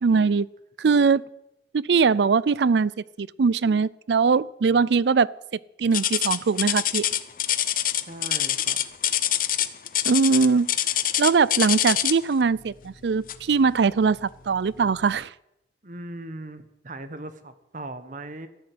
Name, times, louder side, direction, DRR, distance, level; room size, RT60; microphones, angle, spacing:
voice 1, 0.0-0.5 0.8-1.2 1.7-2.9 3.2-5.3 5.8-7.1 10.0-10.7 11.2-15.3, right 5 dB, 70° right, 22 dB, 0.4 m, -21 dB
sound 1, 5.9-12.3 13.3-13.5 14.1-14.2 14.9-15.0, left 12 dB, 50° left, 0.8 m, -25 dB
voice 2, 8.1-8.8 15.8-18.5, right 2 dB, 45° right, 10 dB, 1.3 m, -38 dB
14.0 x 11.5 x 8.0 m, 0.87 s
head